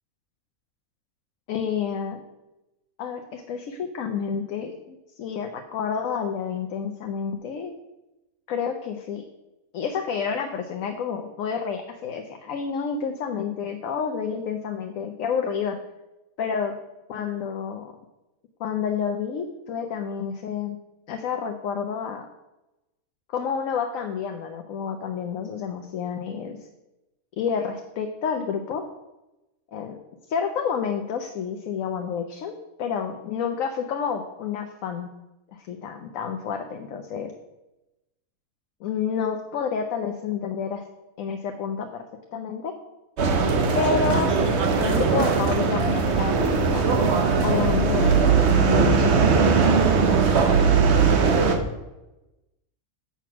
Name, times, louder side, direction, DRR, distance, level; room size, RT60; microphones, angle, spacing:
voice 1, 1.5-2.2 3.0-7.7 8.5-9.2 9.7-15.8 16.4-16.7 17.1-17.9 18.6-20.8 21.1-22.3 23.3-26.7 27.4-28.8 29.7-30.0 30.3-35.1 35.5-37.3 38.8-40.8 41.2-42.0 42.3-42.7 43.7-47.1 47.4-49.9, left 6 dB, 70° left, 6 dB, 1.0 m, -29 dB
sound 1, 43.2-51.6, right 5 dB, 55° right, 1.0 m, -20 dB
6.9 x 6.1 x 5.9 m, 1.0 s
omnidirectional pair, 1.5 m